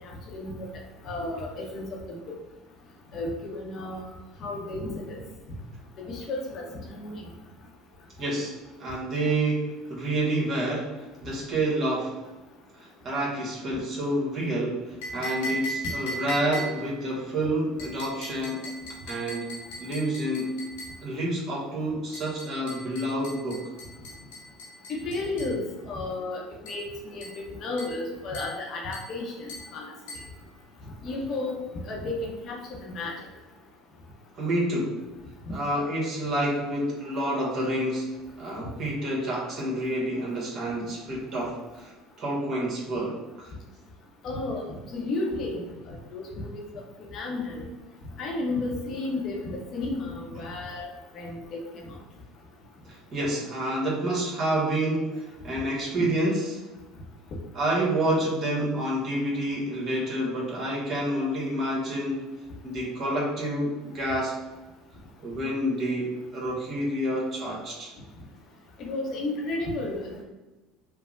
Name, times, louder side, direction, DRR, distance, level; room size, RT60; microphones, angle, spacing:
voice 1, 0.3-0.7 1.0-2.3 3.1-4.1 4.4-5.2 6.0-7.2 16.4-16.6 24.9-29.8 31.0-31.6 31.9-33.1 44.2-46.6 47.1-47.6 48.2-50.9 51.1-51.9 56.0-56.1 68.8-70.2, left 2 dB, 50° left, -1 dB, 0.7 m, -33 dB
voice 2, 8.2-8.5 8.8-12.2 12.8-18.7 19.1-19.5 19.8-20.6 21.0-23.6 34.3-35.0 35.5-38.1 38.4-43.5 50.3-50.5 52.8-56.6 57.5-62.2 62.6-64.3 65.2-67.9, right 1 dB, 45° right, -4 dB, 1.2 m, -28 dB
sound 1, 15.0-17.0 17.8-21.0 22.1-25.6 26.7-26.9 27.2-27.5 27.8-28.1 28.3-28.6 28.9-29.2 29.5-29.7 30.1-30.3, right 1 dB, 80° left, 0.9 m, -38 dB
3.4 x 2.0 x 2.4 m, 1.1 s
hypercardioid pair, 80°, 0 cm